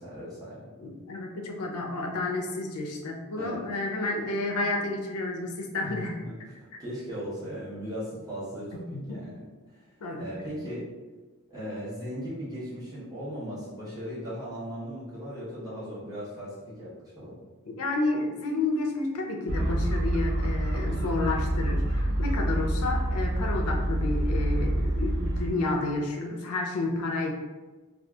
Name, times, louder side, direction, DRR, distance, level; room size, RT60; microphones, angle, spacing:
voice 1, 0.0-0.7 3.4-3.6 5.8-9.5 9.7-9.8 10.2-10.8 11.5-17.4, equal, 15° right, -10 dB, 0.9 m, -38 dB
voice 2, 0.8-6.2 8.8-9.2 10.0-10.6 17.7-27.3, left 2 dB, 75° left, 2 dB, 0.4 m, -31 dB
sound 1, 19.5-25.5, right 1 dB, 55° right, 0.4 m, -27 dB
2.6 x 2.3 x 2.3 m, 1.3 s
head